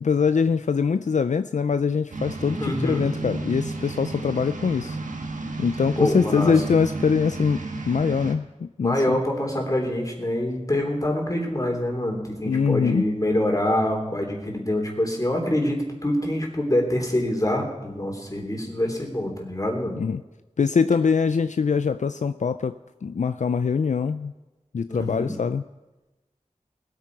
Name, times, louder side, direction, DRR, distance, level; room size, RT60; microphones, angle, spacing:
voice 1, 0.0-5.0 5.6-9.2 12.5-13.1 20.0-20.2 20.6-22.7 23.0-24.3 24.7-25.6, left 5 dB, 70° left, 11 dB, 0.4 m, -23 dB
sound 1, 2.1-8.3, right 3 dB, 90° right, 1.3 m, -32 dB
voice 2, 2.6-3.0 6.0-6.5 8.8-20.0 24.9-25.3, left 1 dB, 25° left, 1 dB, 3.4 m, -25 dB
20.0 x 9.1 x 4.8 m, 1.1 s
wide cardioid pair, 50°, 13 cm